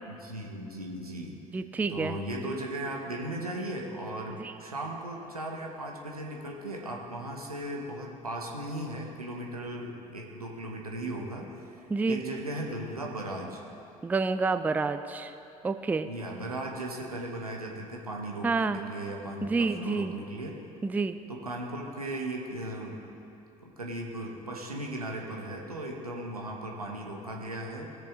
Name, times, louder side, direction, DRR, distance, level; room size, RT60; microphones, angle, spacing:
voice 1, 0.1-1.4 1.9-13.6 16.0-20.6 21.3-23.0 23.6-27.9, right 1 dB, 90° right, 0 dB, 1.1 m, -37 dB
voice 2, 1.5-2.2 4.4-4.5 11.9-12.2 14.0-15.3 15.6-16.1 18.4-18.8 19.4-20.1 20.8-21.2, right 4 dB, 10° right, 10 dB, 0.4 m, -28 dB
17.0 x 6.7 x 3.7 m, 2.8 s
figure-of-eight pair, 60°, 18 cm